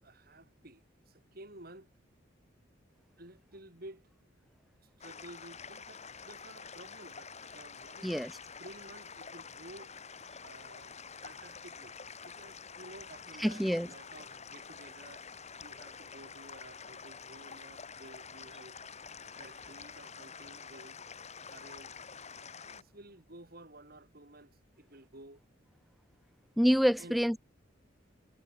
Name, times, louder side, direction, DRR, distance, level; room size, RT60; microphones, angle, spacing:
voice 1, 0.0-1.9 3.2-4.1 4.8-8.3 8.6-9.9 10.4-15.3 15.6-18.8 19.3-21.0 21.5-22.0 22.5-25.4 27.0-27.2, right 1 dB, 50° right, 7.7 m, -53 dB
sound 1, 5.0-22.8, left 5 dB, 35° left, 4.2 m, -48 dB
voice 2, 13.4-13.9 26.6-27.4, equal, ahead, 0.5 m, -27 dB
head